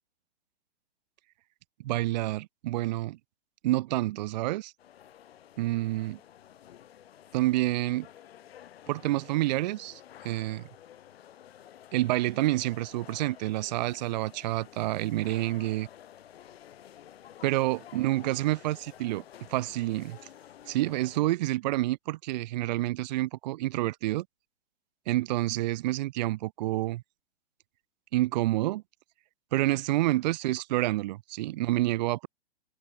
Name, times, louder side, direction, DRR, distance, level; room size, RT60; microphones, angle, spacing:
voice 1, 1.8-3.2 3.6-4.7 5.6-6.2 7.3-8.1 8.9-10.6 11.9-15.9 17.4-19.2 19.5-20.2 20.7-24.3 25.1-27.0 28.1-28.8 29.5-32.3, right 17 dB, 45° right, 0.6 m, -28 dB
sound 1, 4.8-21.2, left 11 dB, 70° left, 1.1 m, -52 dB
hypercardioid pair, 135°, 31 cm